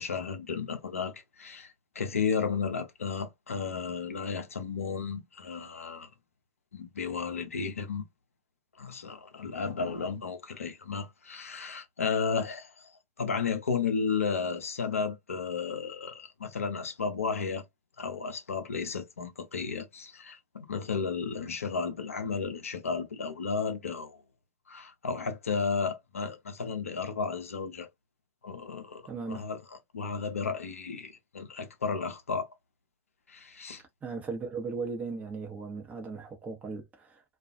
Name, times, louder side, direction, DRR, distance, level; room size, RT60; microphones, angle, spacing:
voice 1, 0.0-6.1 6.7-8.0 8.8-12.9 13.2-17.6 18.0-24.2 24.7-27.9 28.4-29.6 29.9-32.5 33.3-33.8, left 5 dB, 75° left, 0.5 m, -33 dB
voice 2, 29.1-29.5 34.0-37.2, right 4 dB, 20° right, 0.7 m, -37 dB
2.3 x 2.3 x 2.4 m
figure-of-eight pair, 90°, 8 cm